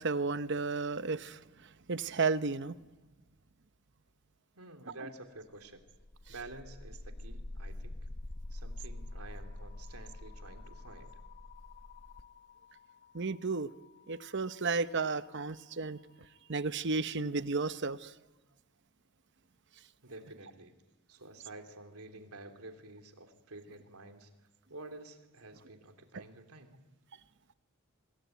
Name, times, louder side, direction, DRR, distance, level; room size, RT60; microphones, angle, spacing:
voice 1, 0.0-1.4 1.9-2.7 13.1-13.7 14.1-16.0 16.5-18.1, right 4 dB, 50° right, 13 dB, 0.8 m, -33 dB
voice 2, 4.5-5.8 6.3-8.1 8.5-11.2 20.0-20.7 21.1-24.3 24.7-26.8, right 2 dB, 80° right, 5 dB, 3.2 m, -50 dB
sound 1, 5.6-15.6, left 1 dB, 40° left, 0.9 m, -47 dB
26.0 x 21.5 x 9.3 m, 1.1 s
head